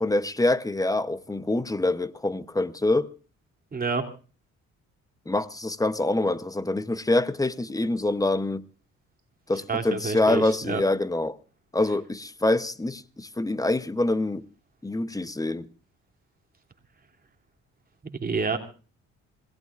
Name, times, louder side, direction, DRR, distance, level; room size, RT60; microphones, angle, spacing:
voice 1, 0.0-3.1 5.3-8.7 9.5-11.4 11.7-14.5 14.8-15.7, left 2 dB, 10° left, 0.8 m, -25 dB
voice 2, 3.7-4.0 9.7-10.8 18.1-18.6, right 4 dB, 30° right, 2.8 m, -28 dB
26.5 x 17.5 x 2.5 m
cardioid pair, 90°, 30 cm